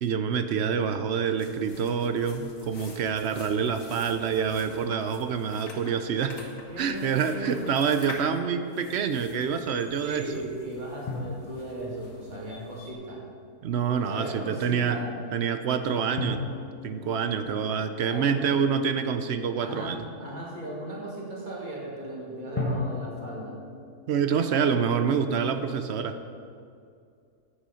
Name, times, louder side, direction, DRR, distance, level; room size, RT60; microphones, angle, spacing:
voice 1, 0.0-6.4 6.8-10.4 13.6-15.0 15.3-16.4 16.8-20.0 24.1-26.2, right 6 dB, 70° right, 9 dB, 0.6 m, -27 dB
sound 1, 1.2-12.9, left 2 dB, 55° left, 1.8 m, -47 dB
voice 2, 6.7-7.6 10.0-13.2 13.8-15.1 17.8-18.5 19.6-23.6, right 1 dB, 30° right, -4 dB, 2.1 m, -37 dB
sound 2, 11.1-13.3 16.2-19.1 22.6-24.4, left 2 dB, 20° left, 1.0 m, -37 dB
10.0 x 8.0 x 5.6 m, 2.4 s
omnidirectional pair, 1.7 m